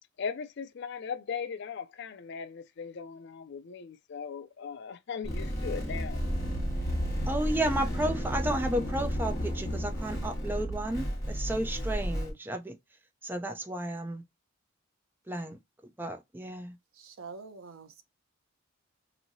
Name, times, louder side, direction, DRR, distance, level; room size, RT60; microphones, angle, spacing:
voice 1, 0.2-6.2, left 6 dB, 55° left, 0.4 m, -38 dB
sound 1, 5.2-12.3, equal, 15° left, 1.5 m, -32 dB
voice 2, 7.3-12.8 13.2-14.2 15.3-15.6 16.0-16.7, right 1 dB, 10° right, 0.4 m, -32 dB
voice 3, 16.9-18.0, right 4 dB, 75° right, 0.6 m, -46 dB
3.1 x 2.7 x 2.6 m
head